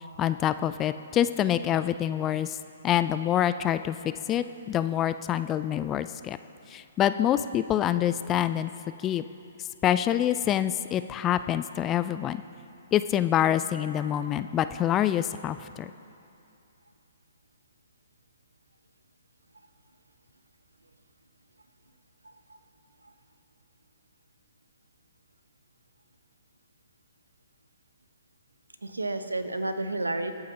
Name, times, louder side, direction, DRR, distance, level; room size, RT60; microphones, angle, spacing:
voice 1, 0.2-2.6 2.8-6.4 6.7-8.7 9.0-9.2 9.8-12.4 12.9-15.9, left 11 dB, 20° left, 12 dB, 0.3 m, -26 dB
voice 2, 22.2-22.6 28.8-30.3, right 2 dB, 85° right, 9 dB, 0.9 m, -31 dB
25.5 x 8.5 x 2.9 m, 2.6 s
figure-of-eight pair, 125°, 0 cm